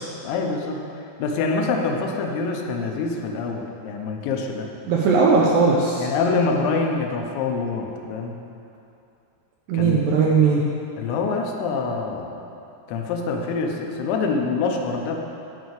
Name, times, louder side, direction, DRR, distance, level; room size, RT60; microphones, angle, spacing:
voice 1, 0.2-4.7 6.0-8.3 9.7-10.0 11.0-12.5 12.9-15.2, left 4 dB, 90° left, 2 dB, 3.2 m, -25 dB
voice 2, 4.9-6.1 9.7-10.6, right 4 dB, 85° right, -3 dB, 2.0 m, -18 dB
11.5 x 5.2 x 7.7 m, 2.6 s
omnidirectional pair, 5.1 m